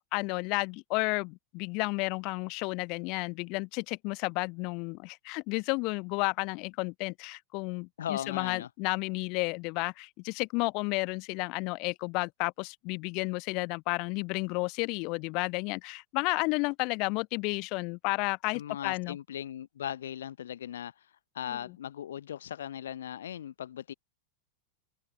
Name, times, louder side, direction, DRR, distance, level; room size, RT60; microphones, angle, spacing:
voice 1, 0.0-19.2, left 29 dB, 45° left, 1.2 m, -32 dB
voice 2, 8.0-8.7 18.5-23.9, left 10 dB, 60° left, 0.6 m, -38 dB
open air
figure-of-eight pair, 90°, 0 cm